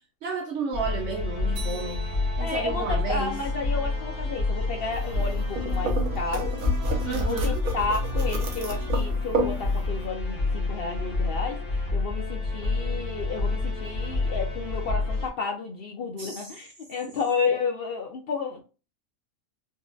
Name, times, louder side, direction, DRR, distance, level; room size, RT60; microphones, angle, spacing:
voice 1, 0.2-2.0 2.4-3.4 7.1-7.7 16.2-16.5, right 4 dB, 65° right, 0.9 m, -32 dB
sound 1, 0.7-15.3, left 3 dB, 25° left, 0.9 m, -29 dB
sound 2, 1.5-6.5, right 8 dB, 45° right, 1.7 m, -45 dB
voice 2, 2.4-6.5 7.0-11.6 11.9-18.6, left 4 dB, 60° left, 0.6 m, -31 dB
sound 3, 4.9-10.1, right 1 dB, 90° right, 1.3 m, -31 dB
4.3 x 2.4 x 2.3 m
omnidirectional pair, 1.5 m